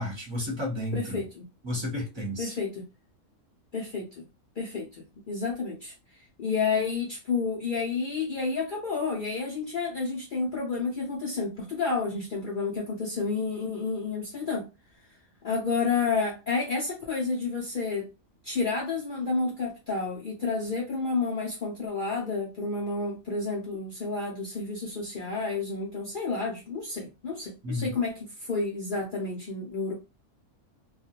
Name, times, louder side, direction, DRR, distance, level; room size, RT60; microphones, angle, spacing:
voice 1, 0.0-1.2 1.6-2.5 27.6-27.9, left 1 dB, 25° right, 0.6 m, -32 dB
voice 2, 0.9-1.5 2.4-2.8 3.7-4.2 4.6-5.9 6.4-14.7 15.4-18.1 18.4-29.9, left 4 dB, 65° left, 0.5 m, -30 dB
2.4 x 2.1 x 2.8 m
omnidirectional pair, 1.5 m